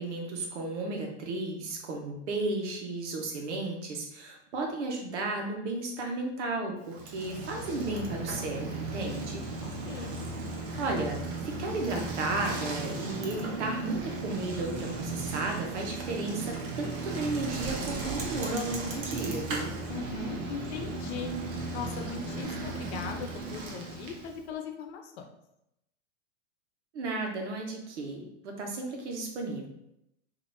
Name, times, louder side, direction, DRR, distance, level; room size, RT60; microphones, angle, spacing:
voice 1, 0.0-9.4 10.8-11.2 11.4-19.7 26.9-29.7, right 2 dB, 75° right, 2 dB, 1.2 m, -34 dB
Bicycle, 6.8-24.4, right 3 dB, 35° right, 0.8 m, -36 dB
voice 2, 9.6-10.1 19.9-21.3 21.7-25.3, left 6 dB, 65° left, 4 dB, 0.8 m, -39 dB
5.2 x 2.9 x 2.6 m, 0.82 s
supercardioid pair, 140°, 35 cm